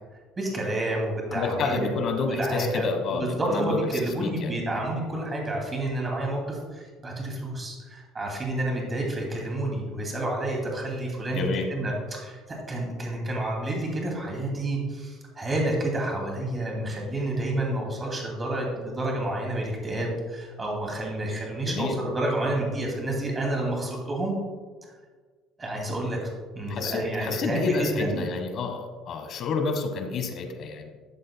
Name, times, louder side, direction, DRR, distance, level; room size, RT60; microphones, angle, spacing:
voice 1, 0.4-1.9 2.3-2.9 3.1-24.3 25.6-26.3 26.5-28.3, right 1 dB, 20° right, 0 dB, 2.5 m, -29 dB
voice 2, 1.3-3.8 4.2-4.8 11.3-11.7 21.6-22.0 26.7-30.9, left 4 dB, 50° left, 5 dB, 1.3 m, -29 dB
12.5 x 7.6 x 2.3 m, 1.5 s
cardioid pair, 115°, 0 cm